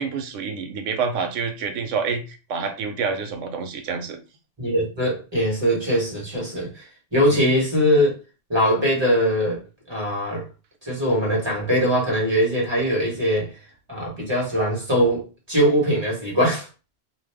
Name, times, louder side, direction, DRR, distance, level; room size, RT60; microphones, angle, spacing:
voice 1, 0.0-4.2 7.3-7.4, right 5 dB, 85° right, 0.9 m, -28 dB
voice 2, 4.6-6.8 7.1-8.1 8.5-9.6 9.9-10.4 10.8-13.5 13.9-16.7, equal, 20° right, 1.2 m, -21 dB
2.5 x 2.1 x 3.4 m
omnidirectional pair, 1.2 m